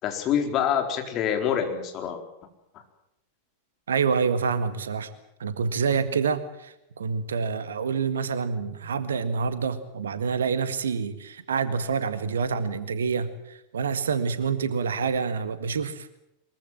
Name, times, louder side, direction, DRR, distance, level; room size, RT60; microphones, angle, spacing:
voice 1, 0.0-2.2, left 8 dB, 35° left, 4 dB, 4.4 m, -26 dB
voice 2, 3.9-5.1 5.4-16.2, right 5 dB, 65° right, 12 dB, 1.7 m, -27 dB
23.5 x 22.5 x 7.6 m, 0.82 s
figure-of-eight pair, 90°, 0 cm